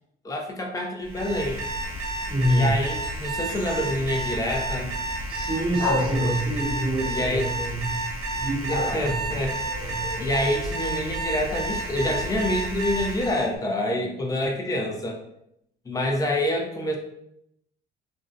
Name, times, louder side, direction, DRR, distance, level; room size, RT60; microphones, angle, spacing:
voice 1, 0.2-1.6 2.5-4.9 7.0-7.5 8.7-15.2 15.8-17.0, left 1 dB, 20° left, 2 dB, 0.4 m, -27 dB
Alarm, 1.0-13.5, right 2 dB, 85° right, 0.6 m, -31 dB
voice 2, 2.3-2.7 5.3-9.2 9.8-10.1, right 1 dB, 30° right, -5 dB, 0.7 m, -27 dB
sound 1, 3.0-4.0 5.8-7.6 8.7-10.9, left 2 dB, 80° left, 1.0 m, -34 dB
2.5 x 2.1 x 2.4 m, 0.77 s
cardioid pair, 110°, 17 cm